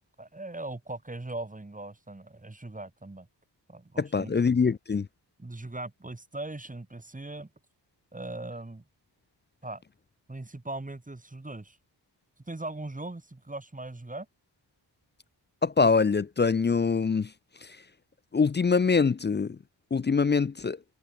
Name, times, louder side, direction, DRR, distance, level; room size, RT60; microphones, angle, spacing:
voice 1, 0.2-3.3 3.7-4.3 5.4-7.5 8.1-8.8 9.6-9.8 10.3-11.8 12.5-14.3, right 2 dB, 20° right, 2.6 m, -39 dB
voice 2, 4.0-5.1 15.6-17.3 18.3-19.6 19.9-20.8, left 5 dB, 25° left, 0.3 m, -24 dB
wide cardioid pair, 130°, 43 cm